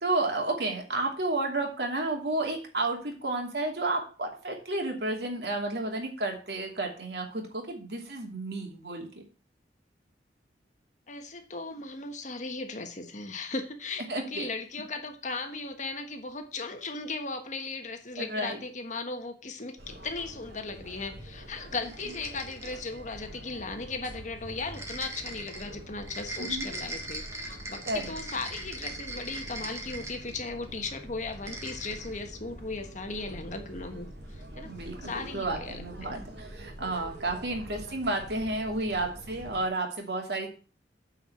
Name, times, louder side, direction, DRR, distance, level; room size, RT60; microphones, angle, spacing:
voice 1, 0.0-9.2 14.1-14.5 18.2-18.6 26.4-26.6 27.9-28.1 34.6-40.5, right 2 dB, 65° right, 2 dB, 2.7 m, -31 dB
voice 2, 11.1-34.8 35.0-36.2, left 3 dB, 45° left, 6 dB, 1.3 m, -37 dB
sound 1, 19.8-39.7, right 1 dB, 85° right, 4.4 m, -45 dB
sound 2, 21.7-23.0 24.7-30.6 31.3-32.2, right 2 dB, 15° right, 1.7 m, -40 dB
8.9 x 4.7 x 7.6 m, 0.37 s
head